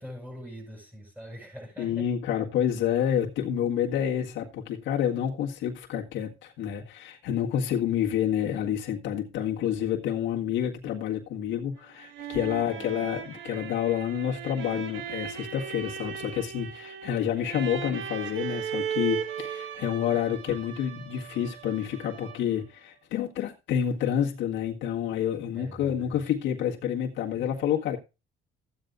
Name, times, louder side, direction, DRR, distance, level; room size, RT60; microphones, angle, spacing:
voice 1, 0.0-2.1 12.5-12.9 25.5-26.3, equal, 10° right, 6.5 m, -44 dB
voice 2, 1.8-28.0, left 9 dB, 75° left, 1.7 m, -29 dB
sound 1, 11.8-22.6, right 8 dB, 75° right, 1.6 m, -37 dB
14.5 x 9.3 x 2.5 m
cardioid pair, 110°, 20 cm